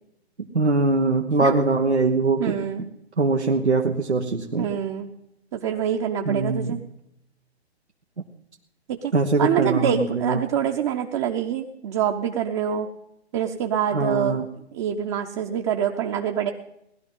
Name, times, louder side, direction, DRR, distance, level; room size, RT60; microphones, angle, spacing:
voice 1, 0.5-2.4 3.2-4.7 6.3-6.7 9.1-10.4 13.9-14.4, right 3 dB, 90° right, 0 dB, 1.3 m, -22 dB
voice 2, 2.4-2.9 4.6-5.1 5.5-6.8 8.9-9.1 9.4-12.9 13.3-14.4 14.7-16.5, right 9 dB, 30° right, 2 dB, 0.9 m, -25 dB
18.5 x 12.0 x 5.5 m, 0.81 s
figure-of-eight pair, 130°, 33 cm